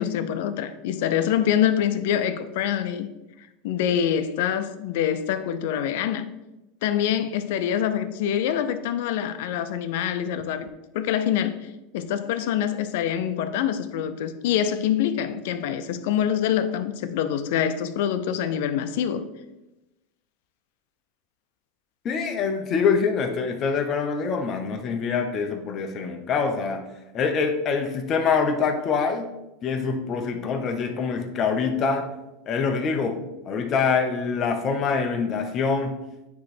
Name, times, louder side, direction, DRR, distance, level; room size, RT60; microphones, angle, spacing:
voice 1, 0.0-3.1 3.6-6.3 6.8-10.7 10.9-19.3, left 9 dB, 70° left, 0.6 m, -25 dB
voice 2, 22.0-26.8 27.1-29.3 29.6-32.1 32.5-33.2 33.5-36.0, left 5 dB, 35° left, 0.9 m, -25 dB
9.4 x 3.2 x 4.3 m
supercardioid pair, 140°, 0 cm